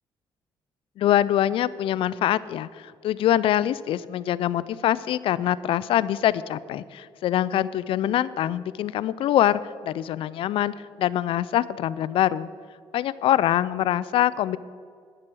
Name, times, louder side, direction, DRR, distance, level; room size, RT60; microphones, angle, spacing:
voice 1, 1.0-2.7 3.0-12.5 12.9-14.6, left 12 dB, 70° left, 18 dB, 0.4 m, -24 dB
10.0 x 7.5 x 6.1 m, 2.1 s
cardioid pair, 100°, 10 cm